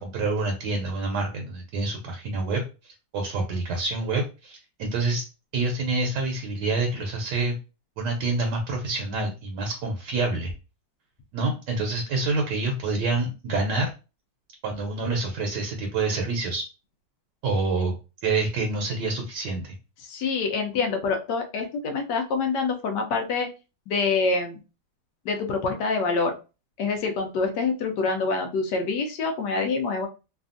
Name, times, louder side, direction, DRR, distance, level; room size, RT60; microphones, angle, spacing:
voice 1, 0.0-5.3 5.5-7.6 8.0-10.5 11.3-13.9 14.6-16.7 17.4-18.0 18.2-19.8, right 3 dB, 70° right, 2 dB, 1.2 m, -27 dB
voice 2, 20.0-23.5 23.9-24.6 25.2-26.3 26.8-30.1, left 4 dB, 70° left, 5 dB, 1.2 m, -26 dB
3.3 x 2.3 x 2.4 m, 0.30 s
omnidirectional pair, 2.0 m